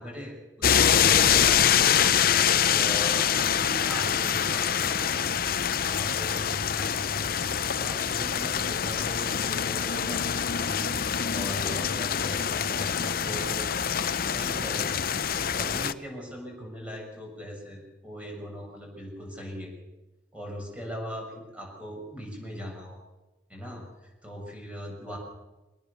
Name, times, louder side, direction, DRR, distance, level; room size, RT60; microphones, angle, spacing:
voice 1, 0.0-2.0 2.3-5.3 5.8-7.4 7.8-11.0 11.3-13.7 14.3-15.0 15.5-19.7 20.3-23.0 23.5-25.2, equal, 5° right, 0 dB, 7.0 m, -40 dB
sound 1, 0.6-15.9, left 8 dB, 50° left, 0.7 m, -25 dB
24.0 x 19.0 x 7.0 m, 1.1 s
head